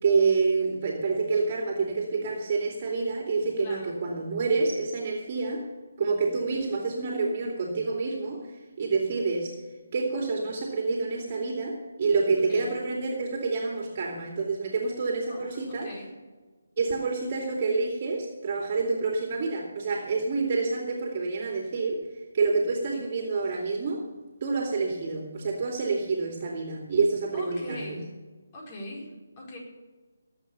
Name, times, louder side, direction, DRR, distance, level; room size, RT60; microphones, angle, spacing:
voice 1, 0.0-5.7 6.0-9.5 9.9-15.9 16.8-22.0 22.3-24.0 24.4-27.8, right 4 dB, 40° right, 0 dB, 2.5 m, -28 dB
voice 2, 3.6-4.0 12.4-12.8 15.3-16.1 22.9-23.1 27.3-28.2 28.5-29.6, left 1 dB, 30° left, -2 dB, 4.8 m, -41 dB
18.5 x 8.1 x 6.9 m, 1.3 s
figure-of-eight pair, 150°, 0 cm